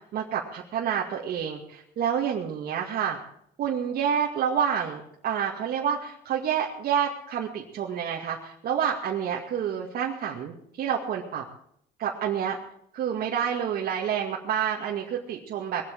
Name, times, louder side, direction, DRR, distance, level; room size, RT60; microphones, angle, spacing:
voice 1, 0.1-3.2 3.6-11.4 12.0-12.6 12.9-15.8, right 8 dB, 60° right, -2 dB, 2.2 m, -28 dB
21.0 x 8.4 x 7.6 m, 0.69 s
cardioid pair, 110°, 17 cm